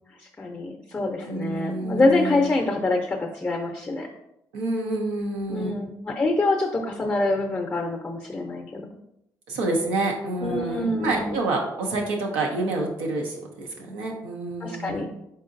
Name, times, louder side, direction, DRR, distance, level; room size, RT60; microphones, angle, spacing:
voice 1, 0.2-4.1 5.5-8.9 10.4-11.3 14.6-15.1, left 2 dB, 25° left, 2 dB, 0.6 m, -25 dB
voice 2, 1.3-2.5 4.5-5.8 9.5-15.1, right 2 dB, 90° right, 0 dB, 0.6 m, -28 dB
3.9 x 3.7 x 2.5 m, 0.83 s
supercardioid pair, 55°, 8 cm